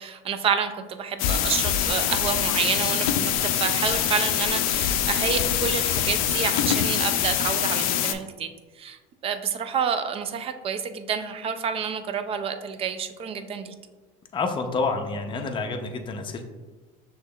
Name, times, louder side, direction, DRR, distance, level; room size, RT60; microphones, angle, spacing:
voice 1, 0.0-8.5 8.8-13.7, right 7 dB, 35° right, 9 dB, 0.4 m, -29 dB
sound 1, 1.2-8.1, left 10 dB, 90° left, 0.4 m, -24 dB
voice 2, 14.3-16.4, left 4 dB, 30° left, 5 dB, 0.6 m, -28 dB
6.3 x 3.0 x 2.3 m, 1.3 s
supercardioid pair, 110°, 18 cm